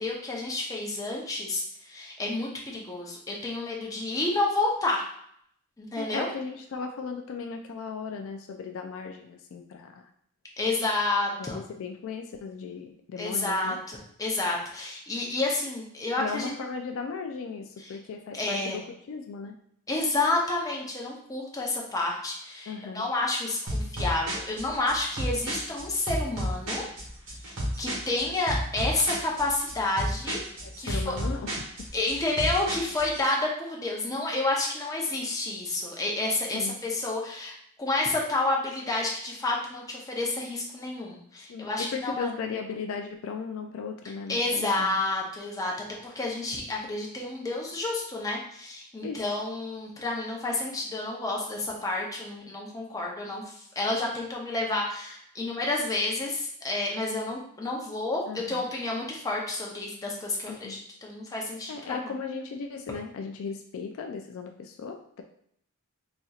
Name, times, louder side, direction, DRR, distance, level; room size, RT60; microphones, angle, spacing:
voice 1, 0.0-5.0 5.8-6.3 10.6-11.6 13.2-16.5 17.8-17.9 18.3-18.8 19.9-26.8 27.4-30.4 30.8-31.1 31.9-42.3 44.3-45.7 46.0-62.1, left 2 dB, 15° left, -2 dB, 0.7 m, -30 dB
voice 2, 6.0-10.1 11.4-13.8 16.2-19.6 22.7-23.1 30.6-31.7 36.5-36.8 41.5-44.9 49.0-49.2 58.3-58.6 60.5-60.8 61.7-65.2, left 5 dB, 65° left, 4 dB, 0.3 m, -37 dB
sound 1, 23.7-33.2, equal, 65° right, 1.2 m, -32 dB
4.0 x 2.8 x 2.4 m, 0.69 s
head